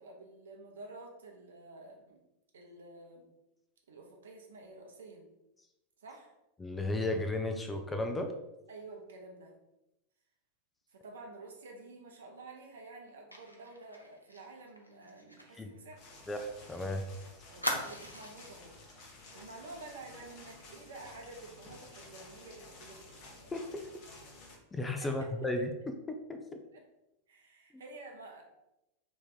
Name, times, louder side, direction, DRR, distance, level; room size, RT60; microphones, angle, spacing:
voice 1, 0.0-2.2 2.5-3.3 3.9-5.3 6.0-6.3 8.7-9.5 10.9-16.0 17.5-18.7 19.3-23.3 25.0-25.3 26.7-26.8 27.3-28.4, right 2 dB, 65° right, 1 dB, 0.7 m, -50 dB
voice 2, 6.6-8.3 15.6-15.7 16.3-17.0 23.5-23.8 24.7-26.6, left 2 dB, 10° left, 5 dB, 0.4 m, -34 dB
Fire, 13.3-16.8 17.0-17.1 17.6-18.6 19.0-19.2 19.5-19.7, equal, 90° left, 0.5 m, -40 dB
sound 1, 16.0-24.6, left 2 dB, 40° left, 0.9 m, -53 dB
2.9 x 2.6 x 4.0 m, 0.91 s
figure-of-eight pair, 90°, 0 cm